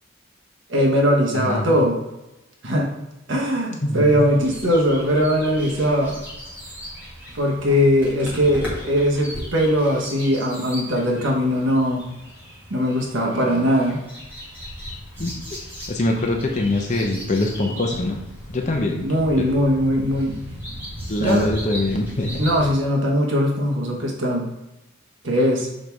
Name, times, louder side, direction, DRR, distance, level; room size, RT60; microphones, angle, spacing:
voice 1, 0.7-2.0 2.6-2.9 3.3-6.2 7.3-12.1 12.7-14.0 19.0-20.3 21.2-21.5 22.3-24.5 25.2-25.7, equal, 75° right, -1 dB, 1.2 m, -20 dB
voice 2, 1.3-1.8 3.8-4.2 15.2-15.3 15.9-18.2 18.5-19.1 19.4-19.5 21.1-22.4, left 2 dB, 35° left, 1 dB, 0.7 m, -23 dB
Juri nie oszczędza gardła w niedzielne popołudnie, 3.9-22.7, equal, 10° right, 2.0 m, -37 dB
6.4 x 4.5 x 3.4 m, 0.97 s
head